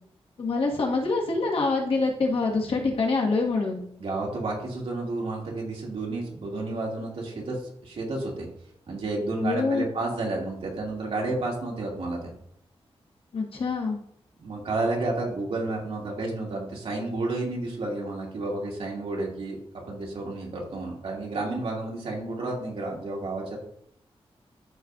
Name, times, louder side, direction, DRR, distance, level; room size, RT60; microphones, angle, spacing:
voice 1, 0.4-3.8 9.4-9.8 13.3-14.0, left 3 dB, 65° left, -1 dB, 1.7 m, -25 dB
voice 2, 4.0-8.5 8.9-12.3 14.4-23.6, right 2 dB, 70° right, -2 dB, 2.3 m, -31 dB
13.0 x 4.6 x 2.6 m, 0.68 s
wide cardioid pair, 150°, 10 cm